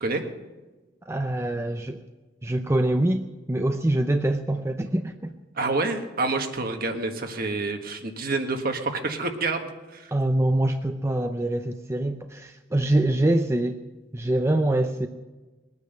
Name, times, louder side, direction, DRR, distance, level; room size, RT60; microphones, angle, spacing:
voice 1, 1.1-2.0 2.4-5.3 10.1-13.8 14.1-15.1, right 1 dB, 15° right, 6 dB, 0.6 m, -24 dB
voice 2, 5.5-10.1, right 3 dB, 55° right, 5 dB, 1.6 m, -28 dB
21.0 x 9.7 x 6.6 m, 1.2 s
head